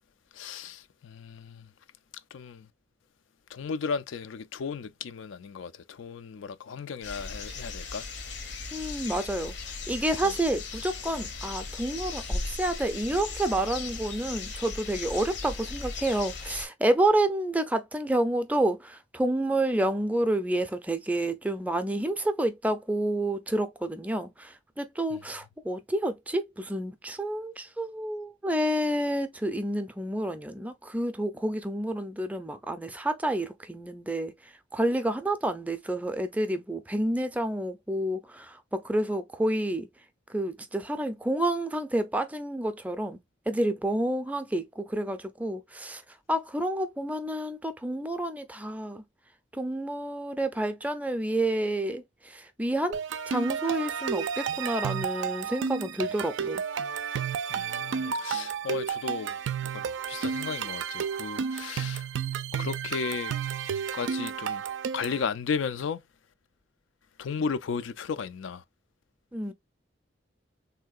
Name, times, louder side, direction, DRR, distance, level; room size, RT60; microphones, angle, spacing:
voice 1, 0.3-1.7 2.3-2.7 3.5-8.0 10.2-10.3 57.5-62.1 62.5-63.4 63.9-64.6 64.9-66.0 67.2-68.6, left 5 dB, 85° left, 0.4 m, -35 dB
sound 1, 7.0-16.7, left 3 dB, 65° left, 0.7 m, -37 dB
voice 2, 8.7-9.5 9.9-39.9 40.3-43.2 43.5-46.0 46.3-49.0 49.5-53.0 53.3-56.6 69.3-69.5, right 1 dB, 10° right, 0.4 m, -29 dB
sound 2, 52.9-65.2, right 7 dB, 75° right, 0.4 m, -32 dB
3.6 x 2.7 x 2.3 m
head